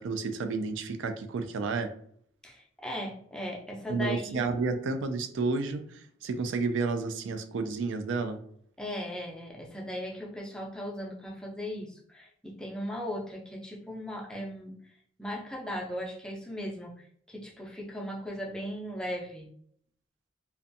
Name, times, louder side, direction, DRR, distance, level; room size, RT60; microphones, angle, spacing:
voice 1, 0.0-1.9 3.9-8.4, right 4 dB, 75° right, 8 dB, 0.3 m, -31 dB
voice 2, 2.4-4.4 8.8-14.8 15.2-19.5, equal, 5° left, -1 dB, 0.4 m, -38 dB
2.5 x 2.2 x 2.6 m, 0.63 s
head